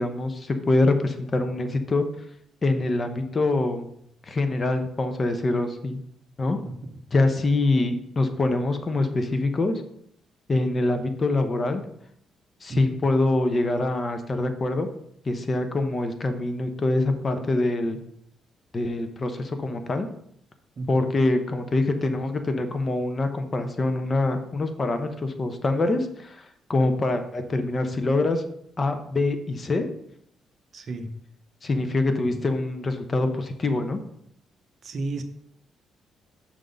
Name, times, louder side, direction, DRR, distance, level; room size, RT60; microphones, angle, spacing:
voice 1, 0.0-2.1 2.6-3.9 4.3-6.0 6.4-6.6 7.1-9.8 10.5-11.8 12.6-14.9 15.2-18.0 18.7-20.1 20.9-28.4 28.8-29.9 31.6-34.0, left 2 dB, 35° left, 7 dB, 0.9 m, -24 dB
voice 2, 20.8-21.1 30.7-31.1 32.2-32.3 34.8-35.2, right 3 dB, 50° right, 6 dB, 0.9 m, -33 dB
6.4 x 3.9 x 5.4 m, 0.71 s
cardioid pair, 90°, 0 cm